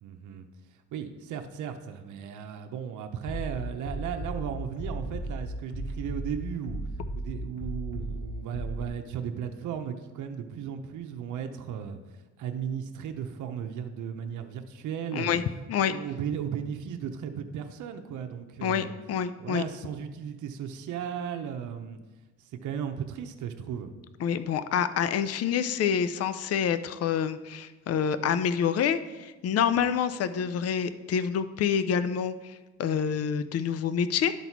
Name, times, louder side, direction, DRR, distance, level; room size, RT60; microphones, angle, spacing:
voice 1, 0.0-0.5 0.9-6.8 7.1-12.0 12.4-15.4 15.8-19.0 19.4-22.0 22.4-23.9, right 8 dB, 75° right, 5 dB, 0.8 m, -36 dB
Bass drum, 3.2-8.9, right 1 dB, 30° left, 2.2 m, -35 dB
voice 2, 15.1-15.4 15.7-15.9 18.6-19.6 24.2-34.3, left 8 dB, 55° left, 12 dB, 0.5 m, -27 dB
11.5 x 4.1 x 4.6 m, 1.2 s
cardioid pair, 90°, 30 cm